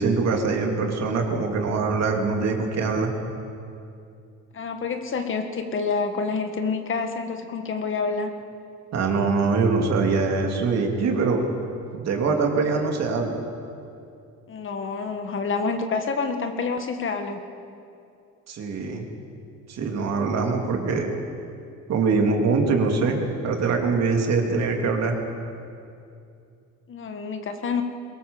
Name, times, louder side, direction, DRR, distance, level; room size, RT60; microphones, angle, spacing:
voice 1, 0.0-3.1 8.9-11.4 11.9-13.4 18.5-19.1 19.7-21.1 21.9-25.1, right 4 dB, 55° right, 2 dB, 3.0 m, -23 dB
voice 2, 4.5-8.3 14.5-17.4 26.9-27.8, left 4 dB, 40° left, 6 dB, 1.7 m, -28 dB
22.5 x 18.5 x 7.2 m, 2.5 s
cardioid pair, 120°, 31 cm